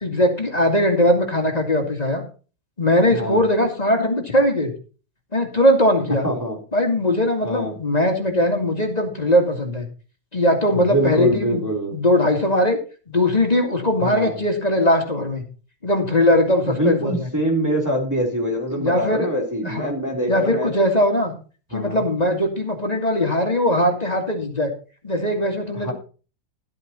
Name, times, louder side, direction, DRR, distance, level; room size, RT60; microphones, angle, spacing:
voice 1, 0.0-2.2 2.8-4.7 5.3-6.3 6.7-9.9 10.3-11.6 11.9-12.8 13.1-15.4 15.8-17.3 18.7-19.3 19.6-19.9 20.3-21.3 21.7-24.7 25.0-25.9, left 1 dB, 20° left, 2 dB, 2.1 m, -20 dB
voice 2, 6.2-6.6 7.4-7.8 10.7-12.0 14.0-14.4 16.7-20.7 21.7-22.0 25.8-25.9, right 1 dB, 10° right, -1 dB, 3.2 m, -24 dB
13.0 x 8.3 x 4.2 m, 0.36 s
omnidirectional pair, 2.1 m